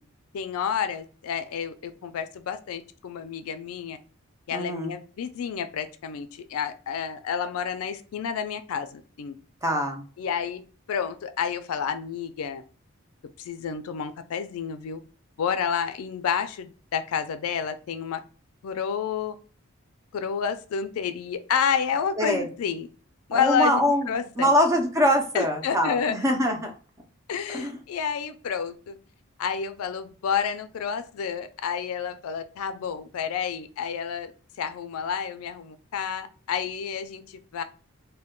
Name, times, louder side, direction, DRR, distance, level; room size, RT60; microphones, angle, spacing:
voice 1, 0.3-4.0 4.5-9.3 10.2-10.6 10.9-12.6 13.4-15.0 15.4-18.2 18.6-19.3 20.1-22.9 23.3-24.5 25.3-26.2 27.3-29.0 29.4-34.3 34.6-37.6, left 7 dB, 85° left, 0.4 m, -30 dB
voice 2, 4.5-4.9 9.6-10.0 22.2-22.5 23.3-24.1 24.4-26.7 27.5-27.8, equal, 15° right, 0.4 m, -23 dB
2.2 x 2.1 x 3.5 m
head